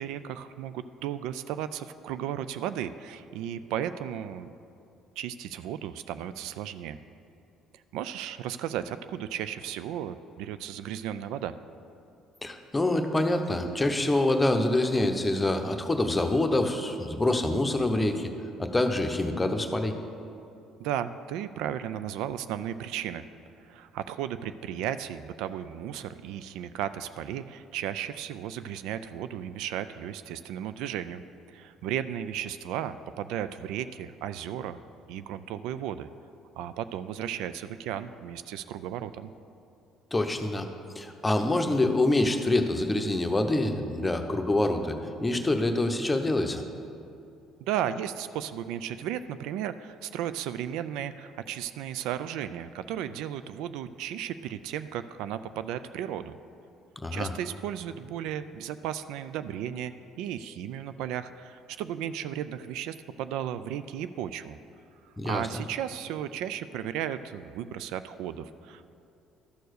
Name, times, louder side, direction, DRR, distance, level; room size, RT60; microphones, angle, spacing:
voice 1, 0.0-4.5 5.2-7.0 7.9-11.6 20.8-23.2 23.6-31.2 31.5-34.8 35.1-36.1 36.6-39.3 47.7-56.4 57.1-64.6 65.2-68.9, right 10 dB, 80° right, 13 dB, 0.3 m, -35 dB
voice 2, 12.4-18.3 18.6-20.0 40.1-40.7 40.9-46.6 57.0-57.3 65.2-65.5, left 2 dB, 15° left, 5 dB, 0.9 m, -26 dB
12.5 x 4.5 x 6.5 m, 2.6 s
supercardioid pair, 80°, 0 cm